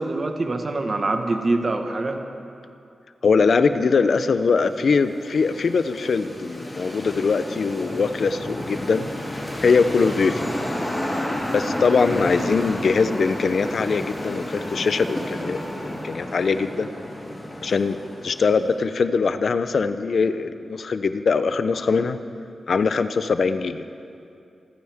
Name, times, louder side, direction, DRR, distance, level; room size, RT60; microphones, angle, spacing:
voice 1, 0.0-2.2, right 2 dB, 45° right, 5 dB, 1.5 m, -24 dB
voice 2, 3.2-9.0 9.6-10.5 11.5-16.9 17.6-18.0 18.2-22.2 22.7-23.8, left 5 dB, 65° left, 11 dB, 0.6 m, -22 dB
sound 1, 4.3-18.8, left 1 dB, 20° left, 4.4 m, -31 dB
28.0 x 14.0 x 3.6 m, 2.5 s
cardioid pair, 75°, 0 cm